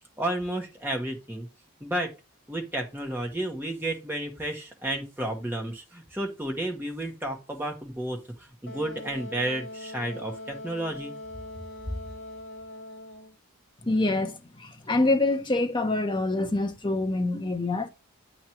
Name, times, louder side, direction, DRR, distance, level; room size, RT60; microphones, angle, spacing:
voice 1, 0.2-1.5 1.8-2.1 2.5-11.1, right 1 dB, 10° right, 1.4 m, -32 dB
Wind instrument woodwind instrument, 8.7-13.4, left 1 dB, 60° left, 1.1 m, -41 dB
voice 2, 13.8-17.9, left 2 dB, 20° left, 0.7 m, -26 dB
8.5 x 3.1 x 5.8 m
head